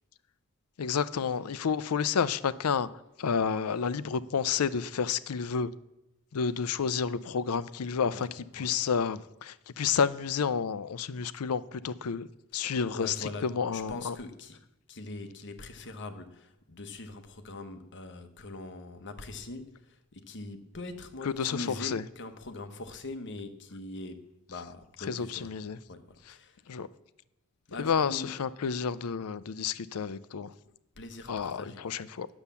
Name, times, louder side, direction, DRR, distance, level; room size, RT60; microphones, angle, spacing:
voice 1, 0.8-2.9 3.2-5.7 6.3-12.3 12.5-14.1 21.4-22.0 25.1-25.8 26.7-26.9 27.8-30.5 31.3-32.3, left 6 dB, 80° left, 0.5 m, -30 dB
voice 2, 12.5-14.6 14.9-25.6 25.9-26.6 27.7-28.4 30.6-31.8, left 2 dB, 55° left, 1.1 m, -42 dB
9.9 x 7.1 x 6.9 m
head